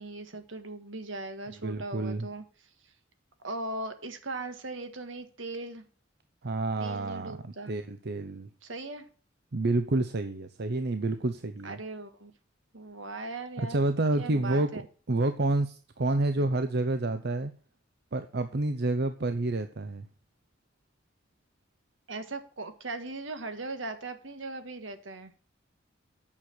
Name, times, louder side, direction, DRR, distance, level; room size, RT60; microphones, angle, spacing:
voice 1, 0.0-2.4 3.4-5.8 6.8-7.8 8.6-9.1 11.6-12.3 12.7-13.8 14.2-14.8 16.4-16.5 22.1-25.3, right 2 dB, 80° right, 9 dB, 1.6 m, -39 dB
voice 2, 1.6-2.3 6.4-7.4 7.7-8.5 9.5-11.8 13.6-14.7 15.1-17.5 18.1-20.1, right 2 dB, 60° right, 9 dB, 0.7 m, -29 dB
8.9 x 6.7 x 6.1 m, 0.39 s
head